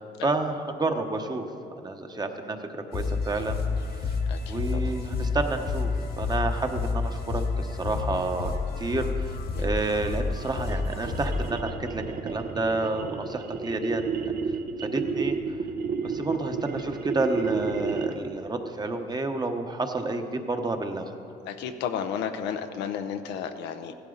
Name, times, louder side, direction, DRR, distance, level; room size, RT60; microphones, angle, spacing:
voice 1, 0.2-1.5 1.8-4.2 4.5-14.3 14.8-15.4 16.0-21.1, right 2 dB, 25° right, 5 dB, 1.1 m, -30 dB
sound 1, 2.9-11.5, left 4 dB, 70° left, 1.8 m, -29 dB
voice 2, 4.3-4.8 9.5-9.7 21.5-23.9, left 8 dB, 85° left, 7 dB, 0.7 m, -33 dB
sound 2, 9.7-18.4, right 5 dB, 60° right, 1.0 m, -32 dB
15.5 x 11.5 x 3.9 m, 2.7 s
cardioid pair, 80°, 17 cm